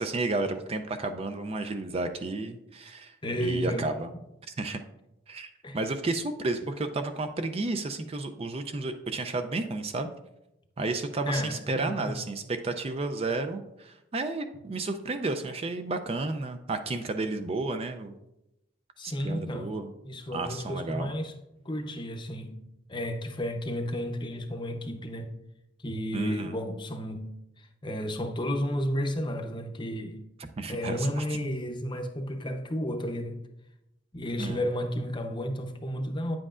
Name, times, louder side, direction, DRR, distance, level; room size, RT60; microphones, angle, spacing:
voice 1, 0.0-3.2 3.4-4.1 4.6-4.8 5.3-10.1 10.8-18.2 19.0-19.9 20.3-21.1 26.1-26.6 30.6-31.2 34.4-34.6, right 3 dB, 30° right, 0.4 m, -32 dB
voice 2, 3.2-3.9 5.6-5.8 11.2-12.2 19.0-19.7 20.0-21.3 21.6-22.6 22.9-25.3 25.8-27.3 27.6-30.2 30.7-33.4 34.1-36.4, equal, 25° left, 0.7 m, -32 dB
9.5 x 7.6 x 2.4 m
head